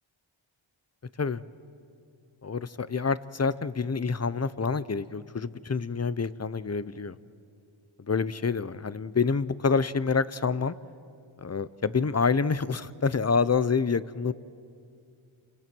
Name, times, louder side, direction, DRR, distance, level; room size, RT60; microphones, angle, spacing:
voice 1, 2.4-7.2 8.1-10.8 11.4-14.3, left 5 dB, 35° left, 16 dB, 0.7 m, -27 dB
29.0 x 25.5 x 6.2 m, 2.4 s
wide cardioid pair, 65°, 48 cm